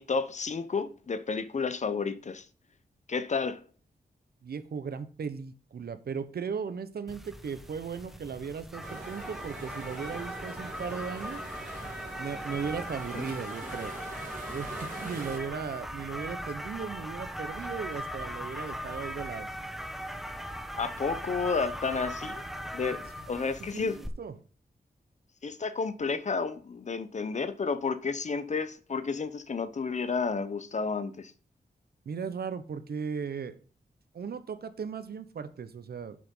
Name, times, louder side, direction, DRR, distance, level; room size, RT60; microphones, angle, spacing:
voice 1, 0.0-2.5 3.1-3.6 13.1-13.3 20.8-22.4 22.7-24.0 25.4-31.3, left 4 dB, 45° left, 13 dB, 0.8 m, -31 dB
voice 2, 4.4-11.4 12.2-13.9 14.5-19.5 23.2-24.4 32.0-33.5 34.1-36.2, right 6 dB, 75° right, 12 dB, 0.9 m, -37 dB
sound 1, 7.1-24.1, equal, ahead, 1.2 m, -39 dB
sound 2, 8.8-15.4, right 2 dB, 50° right, 3.1 m, -44 dB
7.5 x 6.2 x 5.4 m, 0.39 s
wide cardioid pair, 110°, 16 cm